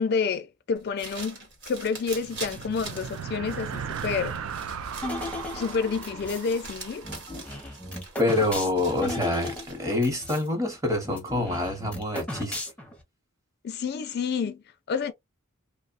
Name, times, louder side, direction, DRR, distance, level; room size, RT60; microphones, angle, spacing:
voice 1, 0.0-1.4 1.7-4.4 5.5-7.1 13.6-15.1, left 5 dB, 50° left, 0.3 m, -29 dB
sound 1, 0.8-10.0, right 3 dB, 55° right, 1.1 m, -43 dB
sound 2, 2.1-7.8, right 6 dB, 75° right, 0.4 m, -37 dB
sound 3, 5.0-6.5 7.0-10.5 10.7-10.8 11.0-13.0, left 1 dB, 5° left, 0.6 m, -36 dB
voice 2, 8.2-12.6, left 2 dB, 15° right, 0.9 m, -26 dB
2.9 x 2.1 x 2.4 m
head